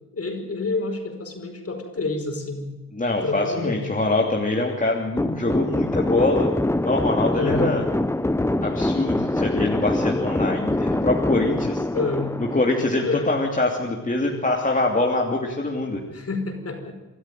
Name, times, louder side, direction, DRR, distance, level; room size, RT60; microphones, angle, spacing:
voice 1, 0.1-2.7 3.2-3.9 7.3-7.7 11.9-12.3 13.0-13.3 16.1-16.9, left 3 dB, 45° left, 5 dB, 5.0 m, -28 dB
voice 2, 2.9-6.5 6.8-7.8 8.6-11.9 12.5-16.0, left 2 dB, 25° left, 0 dB, 2.9 m, -24 dB
sound 1, 5.2-13.5, left 1 dB, 10° left, 0.8 m, -24 dB
24.5 x 13.0 x 9.1 m, 1.1 s
cardioid pair, 70°, 34 cm